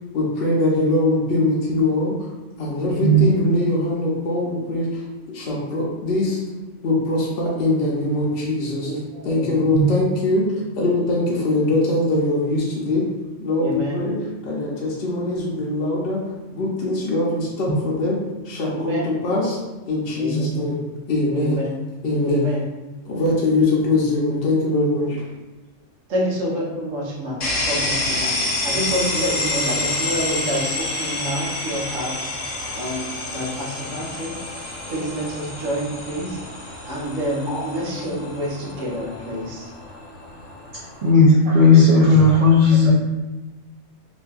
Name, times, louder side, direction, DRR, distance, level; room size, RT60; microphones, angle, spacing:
voice 1, 0.1-2.3 2.6-6.4 6.8-8.9 9.2-13.0 13.4-14.1 14.5-16.2 16.5-18.2 18.4-19.6 19.9-20.8 21.1-21.6 22.0-22.4 23.0-25.2, left 2 dB, 60° left, -5 dB, 0.7 m, -22 dB
voice 2, 8.8-9.5 13.6-14.0 18.6-19.2 20.1-20.7 21.3-21.7 22.2-22.6 26.1-32.2 32.8-36.4 36.9-39.7 42.4-42.9, equal, 85° right, -4 dB, 1.1 m, -28 dB
sound 1, 27.4-41.1, left 2 dB, 85° left, 1.1 m, -28 dB
voice 3, 41.0-42.9, left 2 dB, 55° right, -6 dB, 0.6 m, -14 dB
2.7 x 2.5 x 2.3 m, 1.1 s
omnidirectional pair, 1.3 m